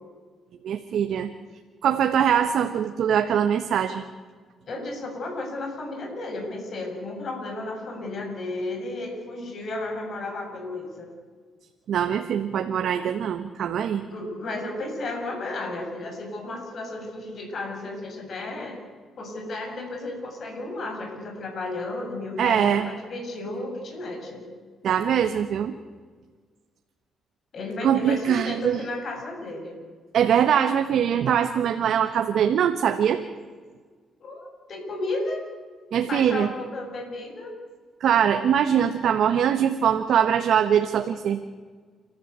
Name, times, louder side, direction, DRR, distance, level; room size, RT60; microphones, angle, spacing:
voice 1, 0.6-1.3 1.8-4.0 11.9-14.0 22.4-22.9 24.8-25.7 27.8-28.8 30.1-33.2 35.9-36.5 38.0-41.4, right 8 dB, 70° right, 6 dB, 1.3 m, -22 dB
voice 2, 4.7-11.1 14.1-18.8 19.2-24.4 27.5-29.8 34.2-35.4 35.9-37.5, left 2 dB, 55° left, 2 dB, 7.5 m, -33 dB
30.0 x 14.0 x 8.2 m, 1.5 s
cardioid pair, 90°, 0 cm